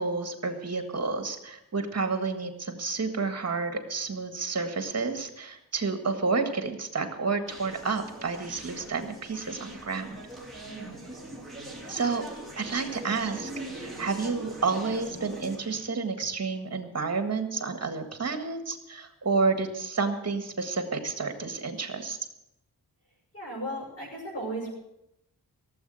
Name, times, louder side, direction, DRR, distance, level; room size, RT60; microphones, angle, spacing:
voice 1, 0.0-10.2 11.9-12.2 12.6-13.5 13.8-22.2, right 4 dB, 45° right, 6 dB, 1.8 m, -30 dB
Conversation, 7.5-15.9, right 1 dB, ahead, 3.1 m, -42 dB
voice 2, 10.6-11.4 23.3-24.7, right 1 dB, 40° left, -7 dB, 6.4 m, -37 dB
17.0 x 7.8 x 7.9 m, 0.84 s
wide cardioid pair, 155°, 36 cm